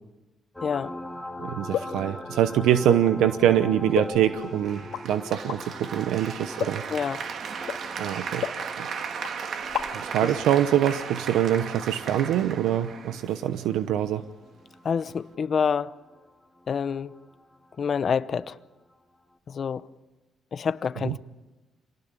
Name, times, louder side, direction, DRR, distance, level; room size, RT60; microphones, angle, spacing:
sound 1, 0.5-17.8 19.3-19.4, left 1 dB, 5° left, 3.3 m, -43 dB
voice 1, 1.4-6.8 8.0-8.5 8.8-8.9 9.9-14.2 21.0-21.2, right 11 dB, 90° right, 0.9 m, -24 dB
sound 2, 1.7-2.0 2.9-3.1 3.9-4.5 4.9-5.0 5.5-5.6 6.6-6.9 7.7-7.8 8.4-9.0 9.2-9.3 9.6-10.1, left 10 dB, 85° left, 2.0 m, -31 dB
Applause, 4.6-13.7, right 6 dB, 60° right, 1.9 m, -36 dB
voice 2, 14.8-15.9 16.7-17.1 17.8-18.6 19.5-19.8 20.5-21.2, left 6 dB, 50° left, 0.8 m, -27 dB
26.5 x 19.0 x 9.8 m
cardioid pair, 90°, 0 cm